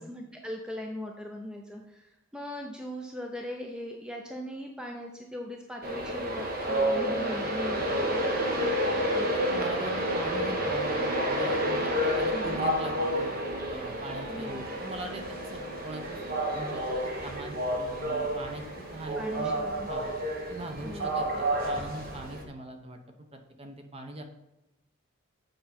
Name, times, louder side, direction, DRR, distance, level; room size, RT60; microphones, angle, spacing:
voice 1, 0.1-8.3 12.3-12.6 14.3-14.7 19.2-19.9 20.8-21.2, left 1 dB, 5° right, 1 dB, 0.6 m, -39 dB
Train, 5.8-22.4, equal, 45° right, 1.1 m, -30 dB
voice 2, 9.1-13.4 13.7-15.2 15.5-16.2 16.5-18.6 18.9-19.6 19.9-20.1 20.5-23.0 23.6-24.2, right 1 dB, 30° right, 5 dB, 0.8 m, -41 dB
8.0 x 5.2 x 4.3 m, 0.94 s
head